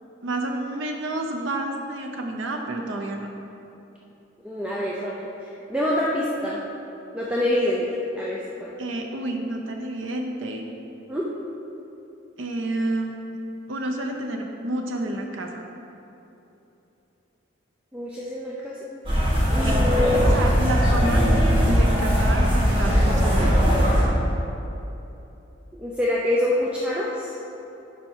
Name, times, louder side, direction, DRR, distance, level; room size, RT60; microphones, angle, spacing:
voice 1, 0.2-3.3 8.8-10.7 12.4-13.4 13.7-15.6 19.6-19.8 20.2-23.7, right 1 dB, 70° right, 2 dB, 0.7 m, -30 dB
voice 2, 4.4-5.3 5.7-6.6 7.1-8.7 11.1-11.2 17.9-18.8 19.5-20.3 25.8-27.3, left 1 dB, 5° right, -5 dB, 0.5 m, -25 dB
sound 1, 19.0-24.0, equal, 25° right, 1.8 m, -19 dB
11.0 x 4.4 x 4.6 m, 3.0 s
head